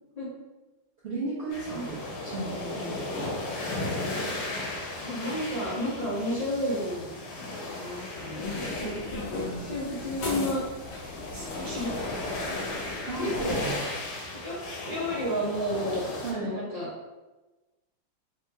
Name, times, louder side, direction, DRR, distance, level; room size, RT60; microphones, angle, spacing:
voice 1, 1.0-3.3 13.0-13.8 16.2-16.5, right 3 dB, 55° right, -8 dB, 0.8 m, -35 dB
sound 1, 1.5-16.3, left 2 dB, 85° left, 1.4 m, -36 dB
voice 2, 5.0-7.1 7.5-10.9 11.3-12.1 13.2-13.6 14.3-14.5 14.9-16.0 16.3-16.9, equal, 40° left, -11 dB, 0.5 m, -32 dB
sound 2, 8.4-13.8, left 2 dB, 55° left, 1.1 m, -38 dB
3.5 x 2.9 x 2.3 m, 1.1 s
omnidirectional pair, 2.0 m